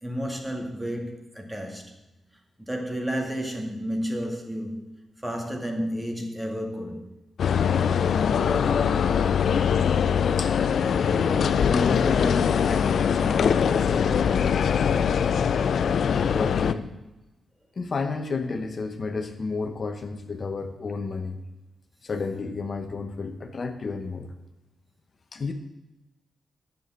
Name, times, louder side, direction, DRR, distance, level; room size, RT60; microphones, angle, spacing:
voice 1, 0.0-1.9 2.6-7.1, equal, 10° right, 2.1 m, -31 dB
sound 1, 7.4-16.7, left 7 dB, 70° left, 0.5 m, -22 dB
voice 2, 11.1-15.1 16.3-17.0 17.8-21.4 22.0-24.3 25.3-25.5, left 4 dB, 50° left, 1.0 m, -31 dB
9.4 x 7.0 x 7.7 m
cardioid pair, 70°, 0 cm